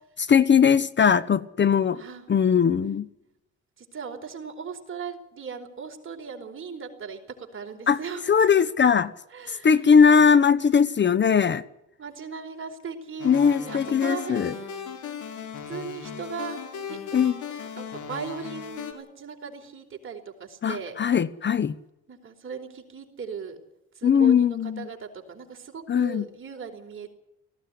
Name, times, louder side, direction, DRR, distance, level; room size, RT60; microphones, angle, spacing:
voice 1, 0.3-2.0 2.3-3.1 7.9-8.0 8.3-9.1 9.5-11.6 13.2-14.5 17.1-17.3 20.6-21.7 24.0-24.9 25.9-26.3, left 7 dB, 35° left, 0.8 m, -20 dB
voice 2, 1.9-2.2 3.8-8.2 9.3-9.7 12.0-14.7 15.7-16.6 16.9-17.0 17.8-21.0 22.1-23.6 23.9-27.1, right 6 dB, 45° right, 4.6 m, -38 dB
sound 1, 13.2-18.9, left 7 dB, 75° left, 3.7 m, -37 dB
18.5 x 15.5 x 10.0 m
cardioid pair, 90°, 30 cm